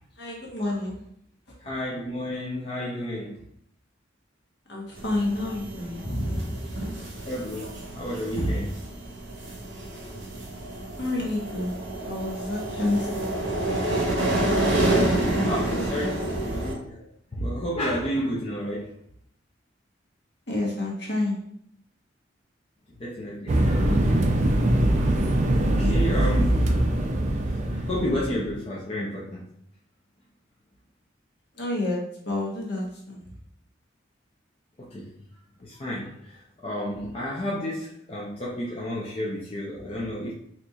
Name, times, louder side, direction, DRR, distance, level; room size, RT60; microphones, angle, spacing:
voice 1, 0.2-1.0 4.7-6.8 11.0-11.7 12.0-13.3 15.3-16.6 20.5-21.4 25.8-26.0 26.4-26.6 31.5-33.3 39.7-40.1, left 2 dB, 60° left, -2 dB, 1.0 m, -30 dB
voice 2, 1.6-3.4 7.0-8.7 15.4-17.0 17.4-18.9 23.0-24.4 24.7-25.1 25.4-25.5 25.8-26.7 27.3-29.4 34.8-35.1 35.6-36.4 36.6-40.3, equal, 30° left, -4 dB, 0.5 m, -31 dB
sound 1, 5.0-16.7, right 1 dB, 75° right, 0.8 m, -28 dB
sound 2, 23.5-28.5, right 1 dB, 40° right, 0.4 m, -22 dB
4.1 x 2.9 x 2.3 m, 0.69 s
head